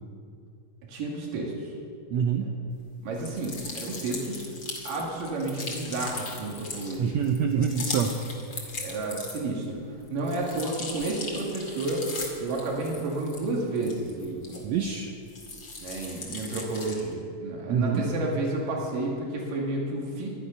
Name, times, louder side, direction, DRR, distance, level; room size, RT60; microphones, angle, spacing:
voice 1, 0.9-1.7 3.0-4.4 4.9-7.2 7.5-7.7 8.7-9.8 10.1-12.0 12.4-14.8 15.8-20.3, right 2 dB, 90° right, -2 dB, 3.8 m, -31 dB
voice 2, 2.1-2.5 7.0-8.2 14.6-15.1 17.7-18.0, right 7 dB, 75° right, 3 dB, 1.7 m, -25 dB
sound 1, 3.2-9.6 10.0-14.9 15.3-17.1, left 3 dB, 40° left, 2.5 m, -38 dB
23.0 x 9.2 x 5.5 m, 2.4 s
omnidirectional pair, 3.7 m